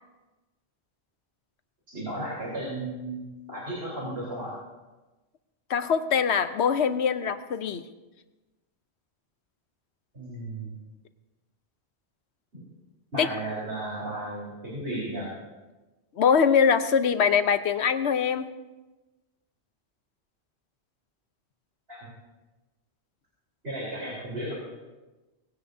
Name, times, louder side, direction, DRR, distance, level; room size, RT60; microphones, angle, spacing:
voice 1, 1.9-4.5 10.1-10.7 12.5-12.6 13.1-15.3 21.9-22.1 23.6-24.5, right 1 dB, 65° right, -6 dB, 4.3 m, -34 dB
voice 2, 5.7-7.8 13.2-13.3 16.2-18.5, left 6 dB, 85° left, 10 dB, 1.1 m, -23 dB
20.0 x 16.5 x 2.8 m, 1.1 s
omnidirectional pair, 1.1 m